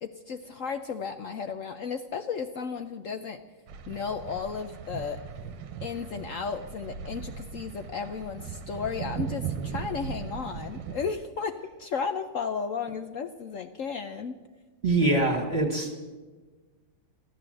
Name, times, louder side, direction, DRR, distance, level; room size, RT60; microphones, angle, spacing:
voice 1, 0.0-3.4 3.9-5.2 5.8-14.4, left 5 dB, 75° left, 8 dB, 0.7 m, -34 dB
sound 1, 3.7-11.1, right 7 dB, 70° right, 1.6 m, -38 dB
voice 2, 14.8-16.0, right 2 dB, 35° right, 1 dB, 1.8 m, -24 dB
14.5 x 13.0 x 7.7 m, 1.3 s
omnidirectional pair, 2.1 m